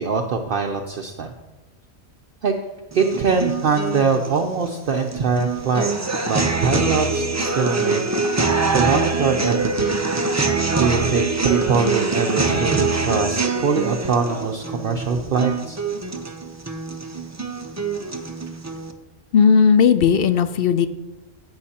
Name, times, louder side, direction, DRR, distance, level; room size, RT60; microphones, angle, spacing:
voice 1, 0.0-1.4 2.4-2.5 2.9-5.9 6.2-8.1 8.4-10.0 10.8-15.8, right 5 dB, 55° right, 4 dB, 0.7 m, -23 dB
sound 1, 2.9-18.9, right 4 dB, 25° right, 0.4 m, -24 dB
voice 2, 19.3-20.9, left 6 dB, 60° left, 12 dB, 0.6 m, -15 dB
16.5 x 6.5 x 2.8 m, 1.1 s
omnidirectional pair, 1.3 m